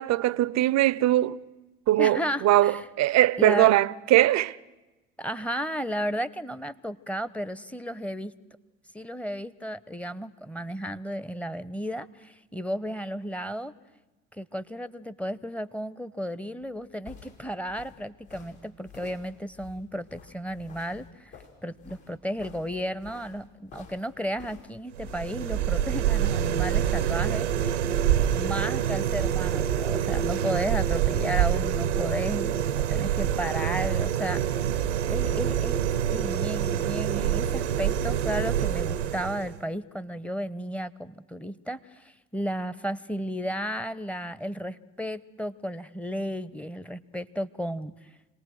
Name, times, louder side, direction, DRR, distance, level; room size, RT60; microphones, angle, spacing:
voice 1, 0.0-1.4 1.9-2.2 2.4-4.6, right 15 dB, 50° right, 0.7 m, -21 dB
voice 2, 2.0-2.8 3.4-3.7 5.2-8.3 8.9-13.7 14.3-21.3 21.6-27.5 28.3-34.5 35.1-35.8 36.1-48.1, equal, 5° left, 0.9 m, -33 dB
sound 1, 16.6-25.2, left 6 dB, 65° left, 5.8 m, -50 dB
sound 2, 24.9-39.6, right 10 dB, 85° right, 0.9 m, -26 dB
27.0 x 19.0 x 6.4 m
figure-of-eight pair, 55°, 35 cm